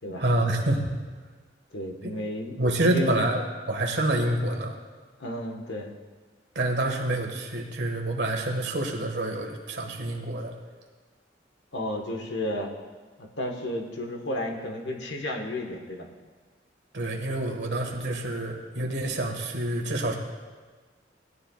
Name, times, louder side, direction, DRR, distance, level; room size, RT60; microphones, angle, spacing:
voice 1, 0.2-0.9 2.0-2.1 2.6-4.8 6.5-10.5 16.9-20.1, right 1 dB, 70° right, 1 dB, 1.6 m, -27 dB
voice 2, 1.7-3.3 5.2-5.9 11.7-12.7 13.2-16.1, left 1 dB, 75° left, 1 dB, 1.3 m, -32 dB
17.5 x 11.0 x 2.4 m, 1.4 s
head